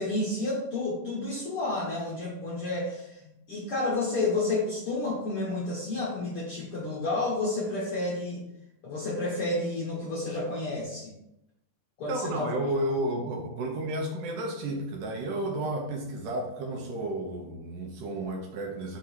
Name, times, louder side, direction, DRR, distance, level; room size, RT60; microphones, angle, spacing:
voice 1, 0.0-8.4 8.8-11.1 12.0-12.5, left 2 dB, 60° left, -6 dB, 1.4 m, -30 dB
voice 2, 12.1-19.0, right 1 dB, 75° right, 1 dB, 2.2 m, -32 dB
5.6 x 3.7 x 4.6 m, 0.83 s
omnidirectional pair, 4.2 m